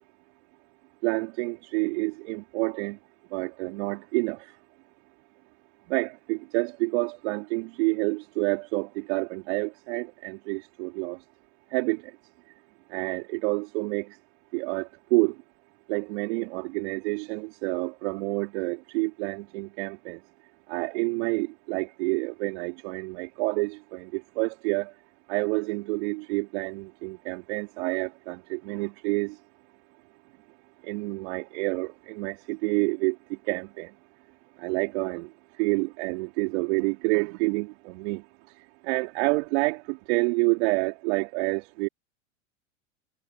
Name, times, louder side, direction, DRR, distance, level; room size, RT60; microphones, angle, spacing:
voice 1, 1.0-3.0 3.3-4.5 5.9-11.2 11.7-12.1 12.9-14.2 14.5-15.3 15.9-20.2 20.7-24.9 25.3-29.3 30.8-33.9 34.6-35.3 35.6-38.2 38.8-41.9, right 28 dB, 60° right, 2.8 m, -28 dB
hypercardioid pair, 95°, 38 cm